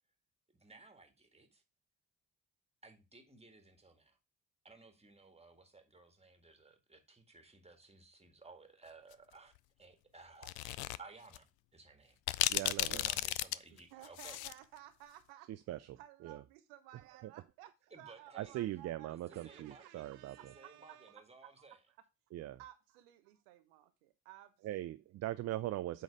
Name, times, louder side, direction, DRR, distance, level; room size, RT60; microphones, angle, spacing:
voice 1, 0.5-1.6 2.8-4.2 4.6-9.5 9.8-14.4 17.9-18.6 19.1-20.0 20.4-21.8, right 3 dB, 15° right, 1.8 m, -58 dB
sound 1, 10.4-11.0 11.3-11.4 12.3-14.6, left 17 dB, 60° left, 0.5 m, -34 dB
voice 2, 12.5-13.1 15.5-16.4 17.2-17.3 18.3-20.5 22.3-22.6 24.6-26.0, right 14 dB, 40° right, 0.4 m, -41 dB
voice 3, 13.7-21.2 22.4-25.0, right 13 dB, 70° right, 0.8 m, -57 dB
8.2 x 4.0 x 5.0 m
figure-of-eight pair, 40°, 45 cm